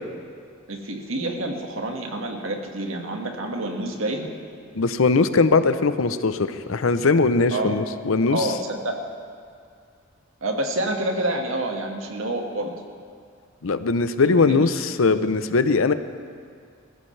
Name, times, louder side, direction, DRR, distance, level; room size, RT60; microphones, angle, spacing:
voice 1, 0.7-4.3 7.5-7.8 8.3-9.0 10.4-12.7 14.3-14.7, right 1 dB, 85° right, 2 dB, 1.8 m, -28 dB
voice 2, 4.7-8.5 13.6-15.9, left 4 dB, 85° left, 11 dB, 0.7 m, -20 dB
21.0 x 15.0 x 3.3 m, 2.2 s
head